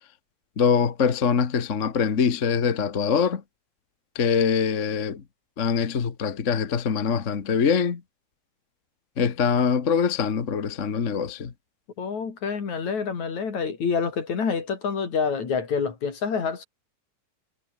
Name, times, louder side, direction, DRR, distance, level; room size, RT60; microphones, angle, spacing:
voice 1, 0.6-3.4 4.1-5.2 5.6-8.0 9.2-11.5, left 6 dB, 40° left, 1.1 m, -23 dB
voice 2, 12.0-16.6, left 5 dB, 60° left, 5.0 m, -27 dB
omnidirectional pair, 3.6 m